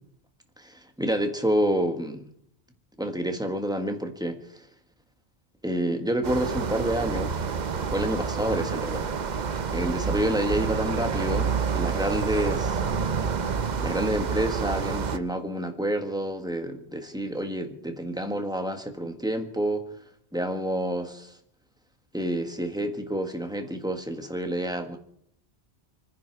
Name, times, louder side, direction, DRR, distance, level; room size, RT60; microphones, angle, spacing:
voice 1, 0.6-2.2 3.0-4.7 5.6-7.4 7.7-9.1 9.7-12.8 13.8-19.8 20.3-21.3 22.1-25.0, right 1 dB, 5° right, 5 dB, 1.5 m, -28 dB
sound 1, 6.2-15.2, right 6 dB, 45° right, 0.8 m, -28 dB
28.5 x 10.0 x 4.7 m, 0.68 s
omnidirectional pair, 1.1 m